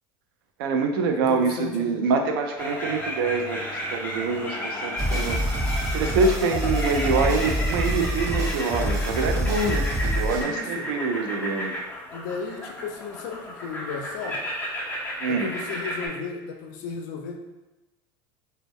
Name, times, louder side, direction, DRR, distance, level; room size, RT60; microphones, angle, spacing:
voice 1, 0.6-5.4 5.9-11.7 15.2-15.5, right 4 dB, 90° right, 4 dB, 0.4 m, -25 dB
voice 2, 1.1-2.0 10.4-10.9 12.1-14.4 15.3-17.4, left 5 dB, 70° left, 4 dB, 0.4 m, -35 dB
sound 1, 2.6-16.1, equal, 15° left, 0.5 m, -33 dB
sound 2, 5.0-10.4, equal, 30° right, 0.8 m, -26 dB
2.1 x 2.0 x 3.4 m, 1.0 s
supercardioid pair, 120°, 12 cm